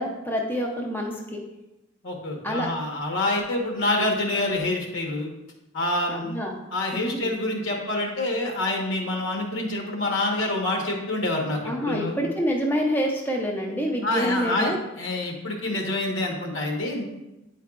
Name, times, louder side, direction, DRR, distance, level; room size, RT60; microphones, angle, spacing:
voice 1, 0.0-1.4 2.4-2.7 6.1-6.6 6.9-7.3 11.6-14.8, equal, 10° left, -1 dB, 0.5 m, -27 dB
voice 2, 2.0-5.3 5.7-6.4 6.7-12.2 14.0-17.0, left 2 dB, 80° left, 0 dB, 1.2 m, -27 dB
8.5 x 4.6 x 2.4 m, 0.98 s
head